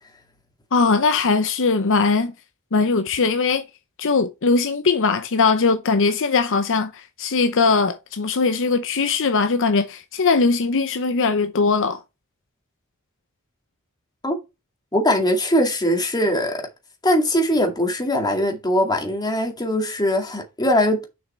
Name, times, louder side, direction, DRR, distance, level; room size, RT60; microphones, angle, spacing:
voice 1, 0.7-2.3 2.7-3.6 4.0-12.0, left 4 dB, 60° left, 0.7 m, -20 dB
voice 2, 14.9-16.7 17.0-21.0, equal, 20° left, 2.2 m, -21 dB
6.9 x 5.7 x 4.4 m
head